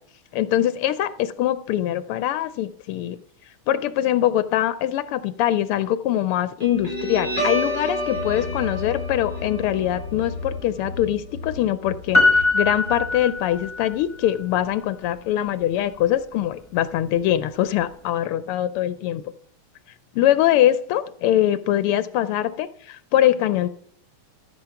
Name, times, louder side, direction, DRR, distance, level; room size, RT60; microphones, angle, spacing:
voice 1, 0.3-3.2 3.7-19.2 20.1-23.7, left 12 dB, 85° left, 14 dB, 1.5 m, -23 dB
Guitar, 6.6-13.6, left 1 dB, 50° right, 6.1 m, -30 dB
Piano, 12.1-13.9 14.2-14.3, left 2 dB, 10° left, 1.8 m, -21 dB
13.5 x 7.4 x 5.7 m, 0.64 s
omnidirectional pair, 2.4 m